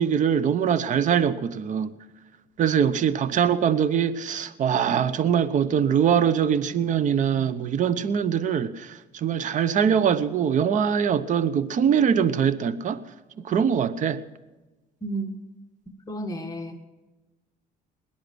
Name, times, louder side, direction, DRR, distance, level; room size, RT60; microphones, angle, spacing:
voice 1, 0.0-1.9 2.6-13.0 13.4-14.2, right 8 dB, 50° right, 0.8 m, -23 dB
voice 2, 16.1-16.8, right 2 dB, 20° left, 1.6 m, -32 dB
20.0 x 10.5 x 6.2 m
cardioid pair, 110°, 17 cm